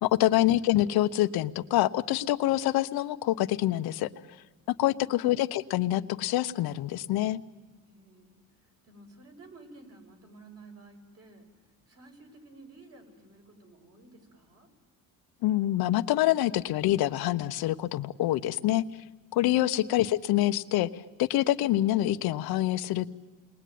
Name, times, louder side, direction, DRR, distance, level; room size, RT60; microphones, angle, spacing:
voice 1, 0.0-4.1 4.7-7.4 15.4-18.8 19.3-20.9 21.2-23.1, left 14 dB, 85° left, 10 dB, 1.0 m, -26 dB
voice 2, 4.8-5.3 7.8-14.7, right 2 dB, 40° right, 2 dB, 6.5 m, -53 dB
29.0 x 21.5 x 9.4 m, 1.4 s
cardioid pair, 130°, 36 cm